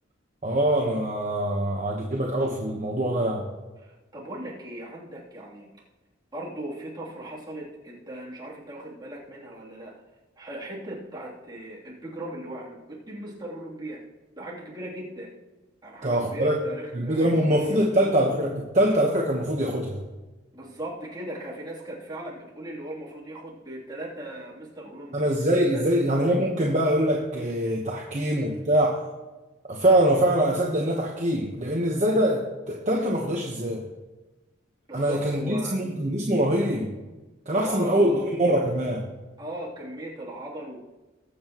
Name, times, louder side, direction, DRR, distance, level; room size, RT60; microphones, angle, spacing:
voice 1, 0.4-3.5 16.0-16.6 16.9-20.0 25.1-29.0 29.7-33.8 34.9-36.9 37.5-39.0, right 1 dB, 40° right, 0 dB, 1.1 m, -23 dB
voice 2, 3.8-5.7 6.3-9.9 10.4-14.0 14.4-15.3 15.8-18.0 20.5-25.3 25.7-25.8 34.9-35.8 37.5-38.3 39.4-40.8, right 1 dB, 20° right, -6 dB, 3.1 m, -38 dB
21.0 x 8.0 x 3.0 m, 1.2 s
head